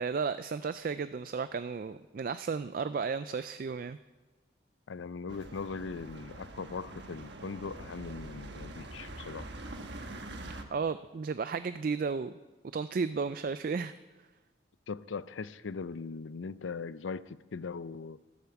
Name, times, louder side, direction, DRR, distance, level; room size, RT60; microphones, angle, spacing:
voice 1, 0.0-4.0 10.7-12.3 12.7-13.9, right 5 dB, 45° right, 13 dB, 0.3 m, -33 dB
voice 2, 4.9-9.5 14.9-18.2, left 4 dB, 85° left, 16 dB, 0.5 m, -40 dB
sound 1, 5.3-10.6, right 2 dB, 65° right, 1.2 m, -44 dB
11.5 x 11.5 x 7.0 m, 1.3 s
head